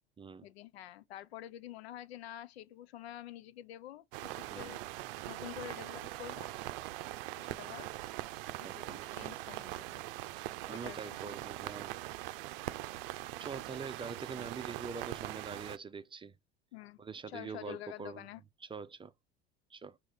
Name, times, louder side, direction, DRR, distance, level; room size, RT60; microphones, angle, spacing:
voice 1, 0.4-4.8 5.2-6.5 7.4-7.9 8.6-10.0 10.7-11.2 16.7-17.0 17.3-18.4, left 12 dB, 70° left, 0.6 m, -48 dB
sound 1, 4.1-15.8, right 17 dB, 60° right, 0.6 m, -42 dB
voice 2, 8.6-9.0 10.4-11.9 12.3-12.4 13.4-16.3 17.0-18.2 18.7-19.1 19.7-20.0, right 5 dB, 15° right, 0.6 m, -44 dB
6.2 x 3.0 x 5.5 m
figure-of-eight pair, 70°, 32 cm